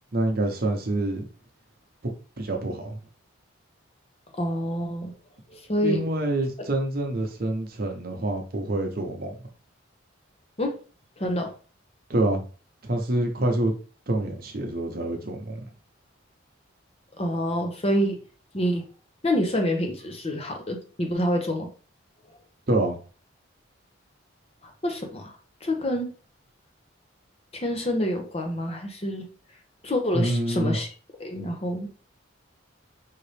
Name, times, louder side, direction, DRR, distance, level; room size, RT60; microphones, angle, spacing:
voice 1, 0.1-1.2 2.4-3.0 5.8-9.4 12.1-12.4 12.8-13.7 14.1-15.6 22.7-23.0 30.1-30.8, right 1 dB, 50° right, 0.8 m, -26 dB
voice 2, 4.3-5.1 5.5-6.0 10.6-10.8 11.2-11.5 17.2-18.2 18.5-18.8 19.2-21.7 24.6-25.3 25.6-26.1 27.5-29.3 29.8-30.9 31.2-31.9, equal, 30° left, 0.8 m, -27 dB
5.1 x 2.9 x 3.3 m
head